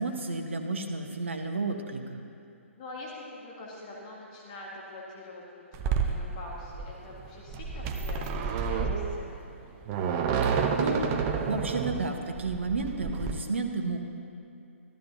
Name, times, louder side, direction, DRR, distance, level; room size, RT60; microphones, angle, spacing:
voice 1, 0.0-2.2 10.4-11.1 11.5-14.0, right 3 dB, 60° right, 4 dB, 1.0 m, -32 dB
voice 2, 2.8-9.4, left 2 dB, 35° left, -4 dB, 1.6 m, -44 dB
sound 1, 5.7-13.3, right 6 dB, 25° right, 0.6 m, -30 dB
13.5 x 12.0 x 2.7 m, 2.6 s
figure-of-eight pair, 130°, 7 cm